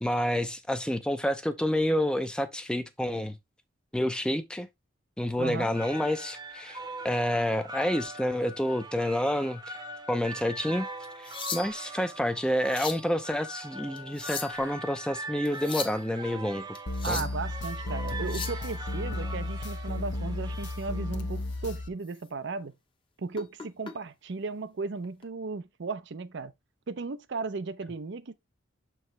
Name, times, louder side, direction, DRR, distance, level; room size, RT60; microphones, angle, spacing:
voice 1, 0.0-3.4 3.9-4.7 5.2-6.8 7.0-9.8 10.1-10.9 11.2-16.8 17.1-17.3, left 1 dB, 5° left, 0.5 m, -29 dB
voice 2, 5.4-5.7 17.0-22.7 23.2-26.5 26.9-28.3, right 4 dB, 60° right, 0.5 m, -35 dB
sound 1, 5.5-21.4, right 2 dB, 20° right, 0.8 m, -42 dB
sound 2, 11.0-11.9 12.5-13.1 14.0-14.7 15.5-16.0 16.7-17.4 18.1-18.6 20.7-20.8 21.4-21.6 22.0-22.2 23.3-23.9 25.0-25.2, left 6 dB, 25° left, 0.9 m, -38 dB
sound 3, 16.9-21.9, left 2 dB, 60° left, 0.8 m, -34 dB
6.8 x 4.7 x 3.2 m
head